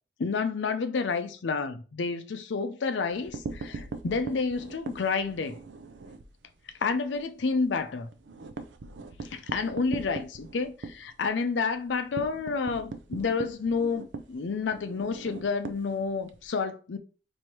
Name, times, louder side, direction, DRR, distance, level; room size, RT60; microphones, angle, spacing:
voice 1, 0.2-5.6 6.8-8.1 9.2-17.0, left 4 dB, 80° left, 0.5 m, -30 dB
sound 1, 3.1-6.3 6.7-6.9 7.2-7.3 7.6-16.4, right 3 dB, 75° right, 0.4 m, -41 dB
4.6 x 2.7 x 3.0 m
head